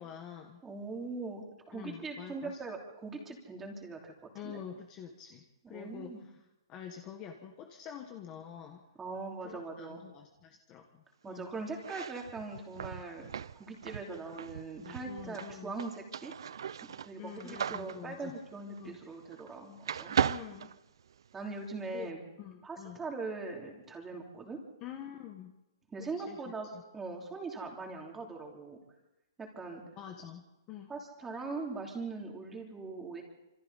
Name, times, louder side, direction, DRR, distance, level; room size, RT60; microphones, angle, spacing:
voice 1, 0.0-0.6 1.7-2.6 4.3-6.4 6.7-8.9 9.4-11.5 14.8-15.8 17.2-18.4 18.8-19.0 20.3-20.7 21.9-22.1 22.4-23.0 24.8-25.5 26.2-26.8 30.0-30.9, left 9 dB, 20° left, 4 dB, 1.4 m, -47 dB
voice 2, 0.6-4.1 4.4-4.6 5.6-6.2 9.0-10.0 11.2-13.3 13.6-16.3 17.0-20.2 21.3-22.2 22.6-24.6 25.9-26.7 26.9-28.8 29.4-29.8 30.9-33.2, right 3 dB, 10° right, 0 dB, 3.1 m, -41 dB
sound 1, 11.7-19.5 19.8-21.5, right 8 dB, 70° right, 0.6 m, -37 dB
27.0 x 25.5 x 4.1 m, 1.0 s
hypercardioid pair, 165°, 2 cm